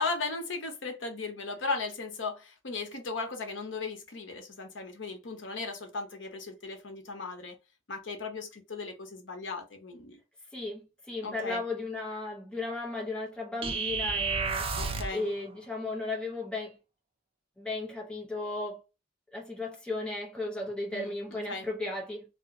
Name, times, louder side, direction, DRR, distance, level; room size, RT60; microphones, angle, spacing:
voice 1, 0.0-7.6 7.9-10.2 11.2-11.6 14.8-15.3 20.9-21.7, left 3 dB, 75° left, 0.9 m, -36 dB
voice 2, 10.5-14.7 15.1-16.8 17.6-18.8 19.3-22.2, left 2 dB, 5° left, 0.7 m, -35 dB
sound 1, 13.6-15.2, right 4 dB, 30° right, 0.4 m, -31 dB
2.4 x 2.1 x 3.6 m
head